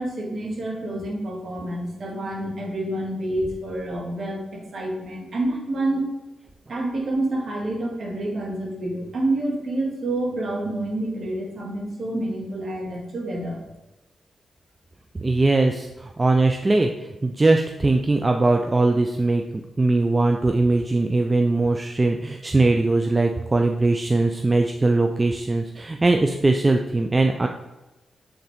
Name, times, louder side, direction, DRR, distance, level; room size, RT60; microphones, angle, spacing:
voice 1, 0.0-6.1 6.7-13.6, right 1 dB, 60° right, -2 dB, 2.0 m, -28 dB
voice 2, 15.2-19.4 19.8-27.5, right 2 dB, 30° right, 4 dB, 0.5 m, -20 dB
6.7 x 3.9 x 3.6 m, 1.0 s
supercardioid pair, 45°, 0 cm